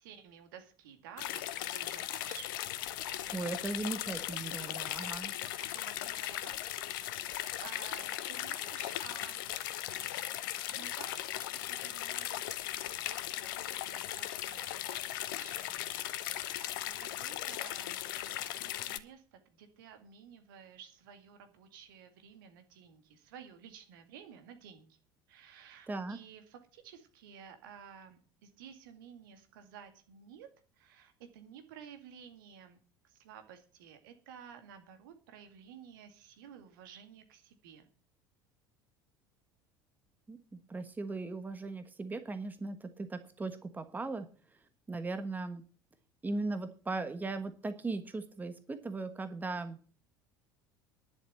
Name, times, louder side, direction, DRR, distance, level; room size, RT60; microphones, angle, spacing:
voice 1, 0.0-2.6 3.0-3.4 4.9-5.2 5.6-6.6 7.0-9.5 10.7-25.0 25.3-30.5 30.8-32.8 33.0-37.9, right 8 dB, 60° right, 7 dB, 2.2 m, -54 dB
sound 1, 1.2-19.0, left 13 dB, 60° left, 0.8 m, -38 dB
voice 2, 3.3-5.3 25.9-26.2 40.3-44.3 44.9-45.6 46.2-49.8, right 3 dB, 15° right, 9 dB, 1.3 m, -38 dB
11.0 x 7.2 x 8.1 m, 0.39 s
figure-of-eight pair, 70°, 12 cm